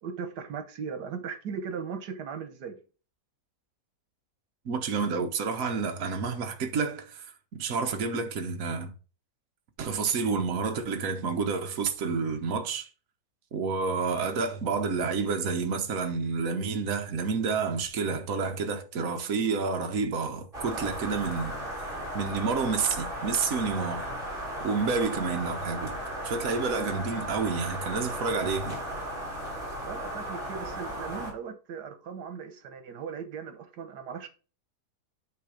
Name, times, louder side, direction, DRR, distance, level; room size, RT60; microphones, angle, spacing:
voice 1, 0.0-2.8 29.8-34.3, right 6 dB, 85° right, 1.6 m, -38 dB
voice 2, 4.6-7.3 7.6-8.9 9.8-12.9 13.5-21.9 22.1-24.1 24.6-25.9 26.2-28.8, right 5 dB, 60° right, 1.4 m, -29 dB
sound 1, 20.5-31.3, right 1 dB, 35° right, 3.2 m, -36 dB
9.3 x 3.5 x 5.1 m
omnidirectional pair, 1.7 m